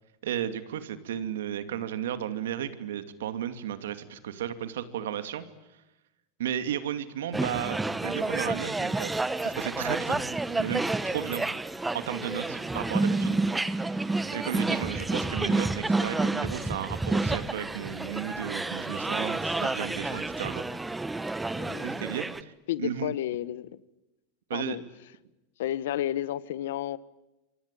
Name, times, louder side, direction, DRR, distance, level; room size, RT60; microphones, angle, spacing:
voice 1, 0.2-5.4 6.4-11.5 11.9-13.4 14.0-20.6 21.8-22.5 22.8-23.1 24.5-24.8, right 10 dB, 90° right, 2.5 m, -34 dB
sound 1, 7.3-22.4, right 2 dB, 10° right, 1.2 m, -29 dB
voice 2, 21.6-21.9 22.7-23.7 24.5-24.8 25.6-27.0, left 12 dB, 80° left, 1.2 m, -31 dB
27.0 x 24.5 x 9.0 m
supercardioid pair, 120°, 0 cm